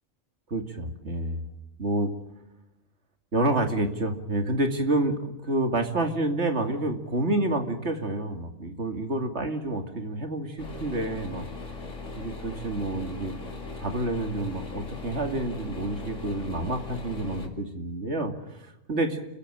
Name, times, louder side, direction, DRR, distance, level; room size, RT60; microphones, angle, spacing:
voice 1, 0.5-1.4 1.8-2.1 3.3-11.4 12.1-13.3 13.8-19.2, right 2 dB, 65° right, 6 dB, 2.8 m, -28 dB
sound 1, 10.6-17.5, left 3 dB, 80° left, 3.0 m, -39 dB
30.0 x 14.5 x 8.8 m, 0.92 s
omnidirectional pair, 1.2 m